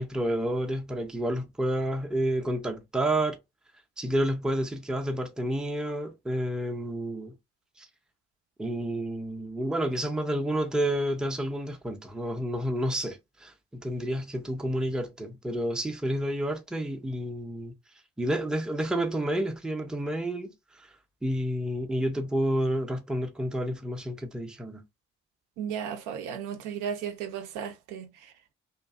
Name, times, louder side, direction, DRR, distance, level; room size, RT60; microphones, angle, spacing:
voice 1, 0.0-3.4 4.0-7.4 7.8-7.9 8.6-17.7 18.2-20.9 21.2-24.8, right 1 dB, ahead, 0.5 m, -30 dB
voice 2, 25.6-28.3, right 8 dB, 70° right, 0.5 m, -35 dB
2.5 x 2.2 x 2.3 m
hypercardioid pair, 40°, 32 cm